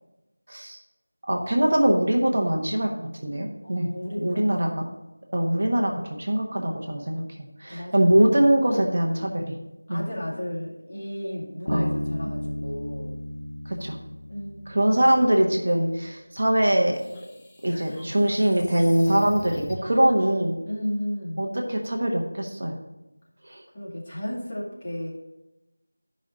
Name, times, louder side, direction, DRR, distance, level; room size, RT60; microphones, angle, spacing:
voice 1, 0.5-0.8 1.3-3.9 4.2-4.8 5.3-7.2 7.6-9.4 9.9-10.0 11.7-12.0 13.7-14.0 14.7-17.0 17.6-20.5 21.4-22.7 23.5-23.6, right 1 dB, 50° right, 1 dB, 1.2 m, -22 dB
voice 2, 3.6-4.8 7.7-8.2 8.6-9.0 9.9-13.2 14.3-15.1 15.7-15.9 17.7-18.2 20.7-21.4 23.7-25.1, equal, 25° left, -6 dB, 2.0 m, -34 dB
Bass guitar, 11.7-15.4, left 1 dB, 80° left, 0.5 m, -33 dB
sound 1, 16.6-20.1, equal, 5° left, 0.5 m, -44 dB
12.5 x 5.3 x 4.0 m, 0.98 s
figure-of-eight pair, 175°, 0 cm